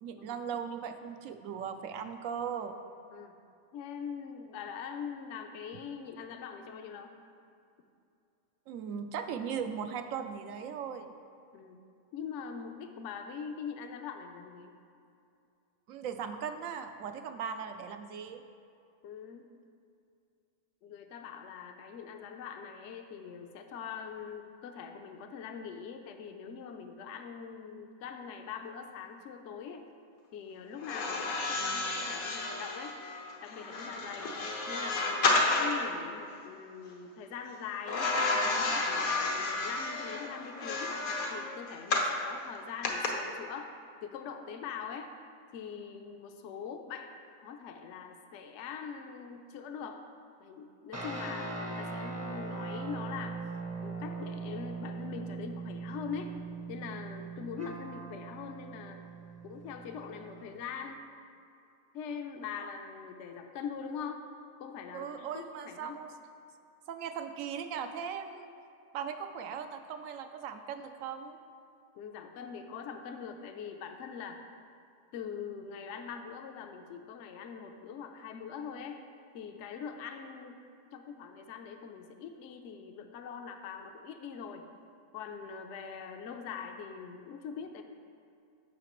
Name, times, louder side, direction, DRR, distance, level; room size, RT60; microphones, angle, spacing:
voice 1, 0.0-2.8 8.7-11.1 15.9-18.4 64.9-66.1 66.9-68.5 68.9-71.4, right 7 dB, 70° right, 8 dB, 1.0 m, -38 dB
voice 2, 3.7-7.1 11.5-11.8 12.1-14.7 19.0-19.5 20.8-29.8 30.3-33.0 33.4-34.4 34.7-38.2 38.6-45.1 45.5-47.1 47.4-50.0 50.4-53.4 53.8-56.3 56.7-59.0 59.4-61.1 61.9-64.2 64.6-66.0 71.9-74.4 75.1-79.0 79.3-80.6 80.9-84.7 85.1-87.8, left 6 dB, 65° left, 5 dB, 0.9 m, -42 dB
sound 1, 30.8-35.9 37.9-42.2 42.8-43.1, left 3 dB, 80° left, 1.4 m, -31 dB
sound 2, 50.9-60.6, right 4 dB, 15° right, 0.6 m, -40 dB
14.0 x 5.8 x 3.0 m, 2.5 s
omnidirectional pair, 1.5 m